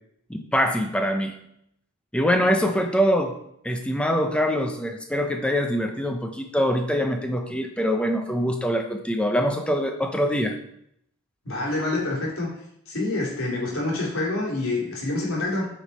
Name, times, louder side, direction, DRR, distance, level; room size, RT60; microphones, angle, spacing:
voice 1, 0.3-1.3 2.1-3.3 3.6-10.6, equal, 5° left, 4 dB, 0.7 m, -24 dB
voice 2, 11.4-12.5 12.9-15.7, left 2 dB, 85° left, -3 dB, 3.1 m, -27 dB
8.6 x 5.1 x 4.2 m, 0.74 s
head